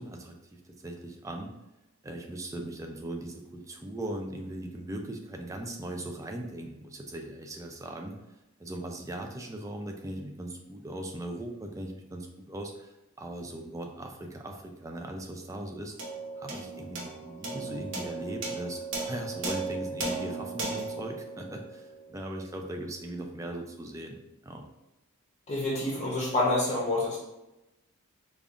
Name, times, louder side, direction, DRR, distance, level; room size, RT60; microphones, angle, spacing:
voice 1, 0.0-1.5 2.0-8.2 8.6-15.9 16.4-24.2 24.4-24.6, right 1 dB, 15° right, 3 dB, 0.3 m, -39 dB
sound 1, 16.0-22.6, right 3 dB, 55° right, 0.7 m, -36 dB
voice 2, 25.5-27.2, left 2 dB, 30° left, -6 dB, 0.7 m, -27 dB
5.1 x 2.4 x 2.4 m, 0.97 s
head